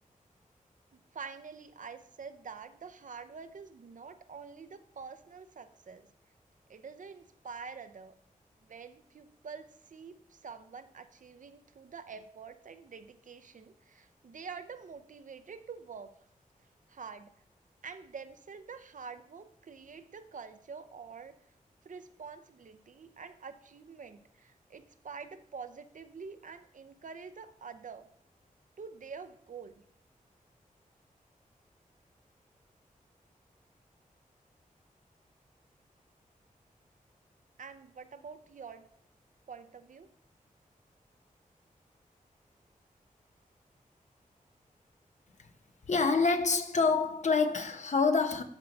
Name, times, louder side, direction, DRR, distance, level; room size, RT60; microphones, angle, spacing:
voice 1, 0.9-6.1 6.7-8.1 8.7-16.1 16.9-17.3 17.8-21.4 21.8-28.1 28.8-29.7 37.6-38.9 39.5-40.1, right 5 dB, 65° right, 0.6 m, -47 dB
voice 2, 45.9-48.4, left 4 dB, 55° left, 0.9 m, -27 dB
13.0 x 4.5 x 4.0 m
wide cardioid pair, 90°, 14 cm